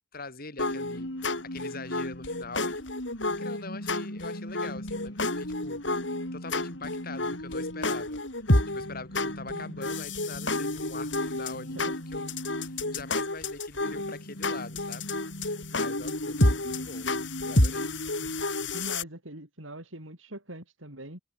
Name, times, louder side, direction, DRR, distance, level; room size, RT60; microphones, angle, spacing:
voice 1, 0.1-2.9 3.4-5.8 6.3-8.2 8.7-11.8 12.1-15.1 15.7-17.9, left 3 dB, 50° left, 4.5 m, -43 dB
sound 1, 0.6-19.0, left 2 dB, 65° left, 6.1 m, -30 dB
voice 2, 9.5-9.8 11.6-11.9 18.2-21.2, right 1 dB, 90° right, 7.3 m, -43 dB
head